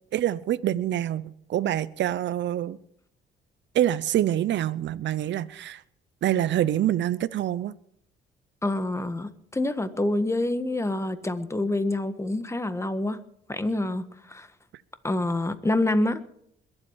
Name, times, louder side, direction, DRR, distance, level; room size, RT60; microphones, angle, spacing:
voice 1, 0.1-2.8 3.7-5.8 6.2-7.7, right 12 dB, 65° right, 16 dB, 0.7 m, -26 dB
voice 2, 8.6-13.2 13.5-14.0 14.3-14.5 15.0-16.3, left 2 dB, 15° left, 11 dB, 1.5 m, -27 dB
22.0 x 8.1 x 7.3 m, 0.70 s
cardioid pair, 90°, 20 cm